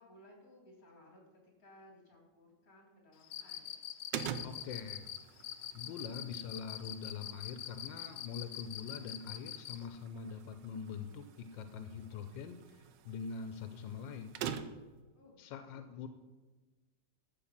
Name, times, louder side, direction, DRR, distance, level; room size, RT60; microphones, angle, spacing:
voice 1, 0.0-3.8 15.1-16.0, left 1 dB, 50° left, 0 dB, 3.3 m, -60 dB
Cricket, 3.2-9.8, left 11 dB, 70° left, 1.1 m, -43 dB
sound 1, 4.1-15.0, right 8 dB, 80° right, 1.4 m, -47 dB
voice 2, 4.4-5.1 5.7-14.4 15.4-16.1, left 6 dB, 90° left, 8 dB, 1.4 m, -44 dB
12.0 x 4.8 x 7.3 m, 1.3 s
omnidirectional pair, 2.0 m